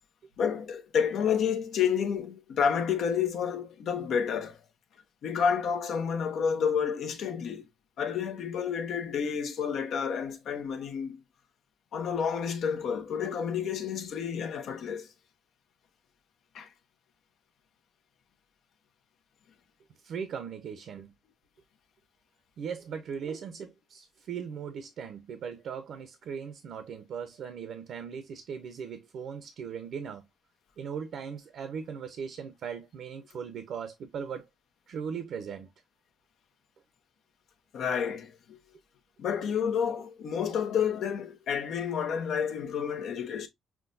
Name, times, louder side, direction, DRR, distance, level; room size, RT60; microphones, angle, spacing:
voice 1, 0.4-4.6 5.2-7.6 8.0-11.2 11.9-15.1 16.5-16.7 37.7-38.6 39.2-43.5, left 7 dB, 70° left, 0.8 m, -30 dB
voice 2, 20.0-21.1 22.6-30.2 30.8-34.4 34.9-35.7, right 7 dB, 70° right, 0.7 m, -38 dB
5.9 x 2.2 x 2.5 m
cardioid pair, 90°, 0 cm